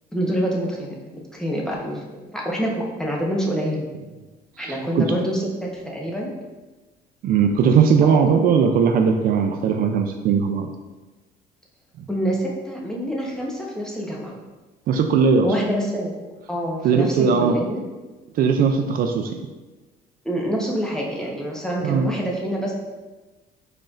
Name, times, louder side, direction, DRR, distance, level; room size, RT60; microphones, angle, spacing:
voice 1, 0.1-1.0 1.3-2.0 2.3-3.9 4.6-6.3 8.0-8.3 12.1-14.3 15.4-16.1 16.5-17.8 20.2-22.7, equal, 5° left, -2 dB, 1.0 m, -26 dB
voice 2, 4.6-5.1 7.2-10.7 14.9-15.5 16.8-17.6 18.3-19.4 21.8-22.1, right 6 dB, 60° right, 5 dB, 0.4 m, -19 dB
4.9 x 4.3 x 2.5 m, 1.2 s
cardioid pair, 110°, 17 cm